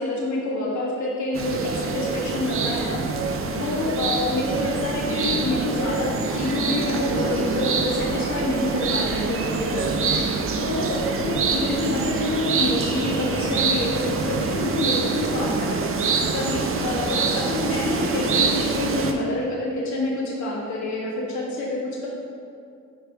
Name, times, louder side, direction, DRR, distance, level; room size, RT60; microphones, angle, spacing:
voice 1, 0.0-3.0 3.5-10.0 10.6-22.1, left 2 dB, 65° left, -5 dB, 1.4 m, -27 dB
sound 1, 1.3-19.1, right 4 dB, 45° right, 0.6 m, -25 dB
4.9 x 4.5 x 4.7 m, 2.4 s
cardioid pair, 90°, 30 cm